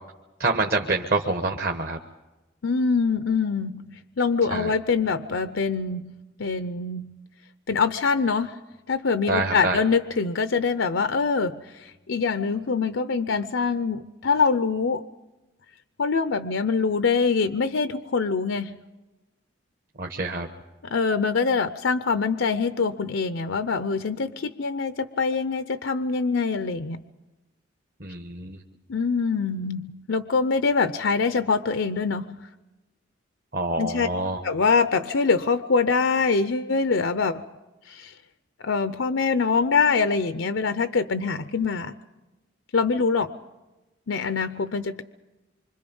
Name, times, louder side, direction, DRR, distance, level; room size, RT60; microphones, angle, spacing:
voice 1, 0.4-2.0 4.5-4.7 9.3-9.8 20.0-20.5 28.0-28.6 33.5-34.4, right 3 dB, 50° right, 2 dB, 1.2 m, -26 dB
voice 2, 2.6-6.1 6.4-7.1 7.7-8.6 8.9-15.0 16.0-18.8 20.9-27.0 28.9-32.5 33.8-34.1 34.4-37.4 37.9-38.1 38.6-41.9 42.7-43.3 44.1-45.0, left 4 dB, 90° left, 11 dB, 0.7 m, -24 dB
26.0 x 25.0 x 5.4 m, 1.1 s
head